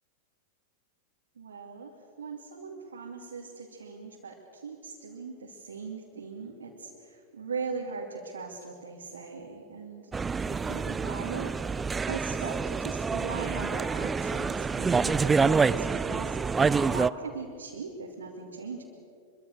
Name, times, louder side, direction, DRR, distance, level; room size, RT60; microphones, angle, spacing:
voice 1, 1.4-10.1 10.4-11.7 12.1-18.8, right 5 dB, 70° right, -2 dB, 2.6 m, -40 dB
sound 1, 10.1-17.1, right 5 dB, 15° right, 0.5 m, -27 dB
25.0 x 24.0 x 6.6 m, 2.5 s
figure-of-eight pair, 90°, 0 cm